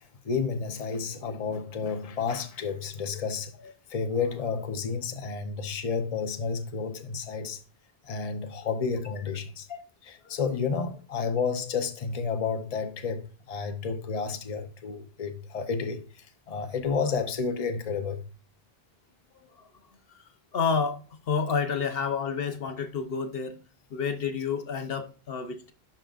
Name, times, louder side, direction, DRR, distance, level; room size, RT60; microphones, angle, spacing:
voice 1, 0.2-3.5 3.9-7.6 8.1-9.7 10.3-16.0 16.5-18.3, left 5 dB, 40° left, 0.9 m, -31 dB
voice 2, 20.5-23.6 23.9-25.7, left 5 dB, 65° left, 1.1 m, -30 dB
11.0 x 4.3 x 2.4 m
omnidirectional pair, 1.1 m